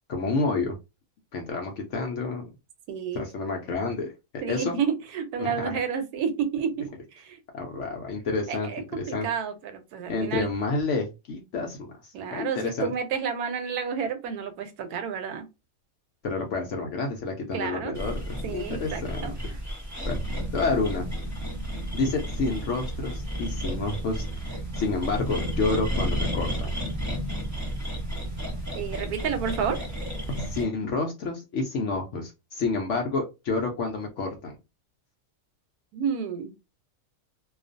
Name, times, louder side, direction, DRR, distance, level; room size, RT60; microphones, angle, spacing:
voice 1, 0.1-0.8 1.3-2.5 3.1-4.7 5.4-5.7 7.5-9.3 10.1-12.9 16.2-19.3 20.0-20.2 20.5-21.0 21.9-26.8 30.4-34.6, left 3 dB, 65° left, 2 dB, 0.7 m, -29 dB
voice 2, 2.9-3.2 4.4-6.9 7.1-7.4 8.5-10.5 12.1-15.5 17.5-18.0 18.4-19.3 28.7-29.8 35.9-36.5, right 7 dB, 80° right, 8 dB, 1.1 m, -30 dB
sound 1, 17.9-30.6, right 1 dB, 15° right, 0.8 m, -32 dB
2.4 x 2.3 x 2.5 m, 0.25 s
omnidirectional pair, 1.6 m